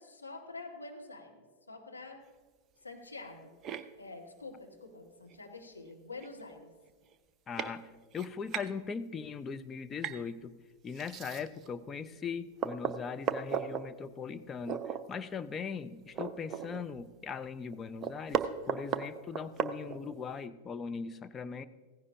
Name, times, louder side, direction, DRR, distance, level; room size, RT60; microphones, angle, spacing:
voice 1, 0.0-2.2 2.8-3.6 3.9-6.7, left 3 dB, 80° left, 2 dB, 1.4 m, -47 dB
sound 1, 3.6-3.8 5.3-5.4 5.9-6.0 6.2-6.5 7.1-7.2 7.6-7.7 8.1-8.7 10.0-10.2 10.9-11.7 12.2-12.3 12.6-13.8 14.7-15.0 15.4-15.5 15.8-17.0 17.3-17.4 17.7-20.3, right 7 dB, 30° right, 0.6 m, -35 dB
voice 2, 7.5-10.5 10.8-21.6, left 6 dB, 20° left, 11 dB, 0.5 m, -40 dB
16.0 x 15.0 x 2.6 m, 1.4 s
figure-of-eight pair, 90°, 0 cm